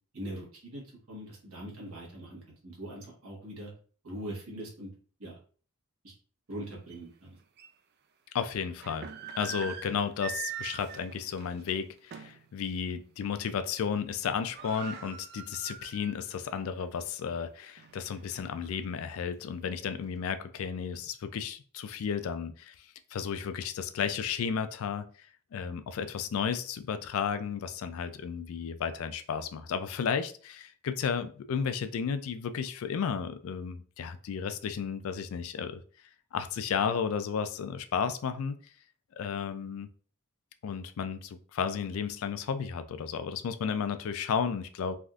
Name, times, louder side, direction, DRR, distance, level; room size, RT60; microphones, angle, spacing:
voice 1, 0.1-3.7 4.0-4.9 5.2-5.3 6.0-6.1 6.5-7.3, right 1 dB, 85° right, -3 dB, 1.2 m, -42 dB
sound 1, 6.9-7.0 7.6-7.7 8.6-12.4 12.9-13.0 13.4-13.8 14.0-14.1 14.3-16.3 16.7-16.8 17.4-18.7, right 7 dB, 50° right, 0.3 m, -43 dB
voice 2, 8.3-9.1 9.4-22.7 23.1-25.1 25.5-35.8 36.3-38.6 39.2-39.9 40.6-44.9, left 6 dB, 70° left, 11 dB, 0.3 m, -33 dB
3.5 x 2.5 x 2.3 m, 0.42 s
head